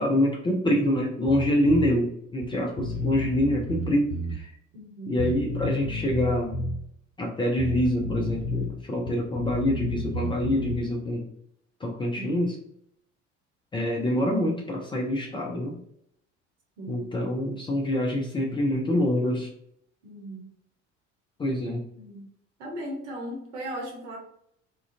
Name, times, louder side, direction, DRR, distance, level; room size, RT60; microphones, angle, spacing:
voice 1, 0.0-4.5 5.1-6.6 7.2-11.3 11.8-12.6 13.7-15.8 16.9-19.5 21.4-21.8, left 1 dB, 15° left, -1 dB, 0.4 m, -26 dB
Bass guitar, 1.3-1.9 2.4-2.5 2.8-4.4 5.2-6.8 7.6-8.7 9.0-10.9, left 1 dB, 80° left, 0.6 m, -31 dB
voice 2, 4.7-5.2 12.1-12.4 16.8-17.0 20.0-20.5 22.0-22.3 22.6-24.2, right 1 dB, 65° right, 0 dB, 0.9 m, -37 dB
2.4 x 2.2 x 2.6 m, 0.70 s
figure-of-eight pair, 60°, 37 cm